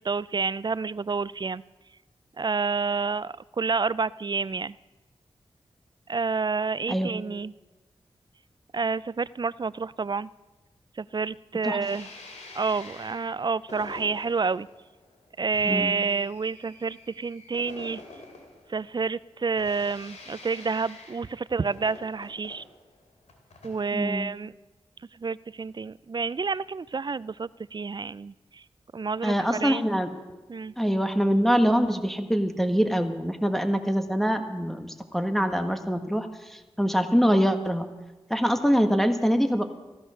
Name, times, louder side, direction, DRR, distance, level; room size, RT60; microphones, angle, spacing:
voice 1, 0.0-1.6 2.4-4.7 6.1-7.5 8.7-10.3 11.0-12.1 12.5-14.7 15.4-18.0 18.7-22.6 23.6-24.5 25.1-28.6 28.9-29.9 30.5-30.7, right 4 dB, 40° right, 20 dB, 0.4 m, -29 dB
sound 1, 11.8-24.0, left 3 dB, 85° left, 2.8 m, -47 dB
voice 2, 23.9-24.3 29.2-30.1 30.8-37.9 38.3-39.6, equal, ahead, 5 dB, 1.6 m, -24 dB
14.5 x 14.0 x 6.5 m, 1.2 s
cardioid pair, 40°, 11 cm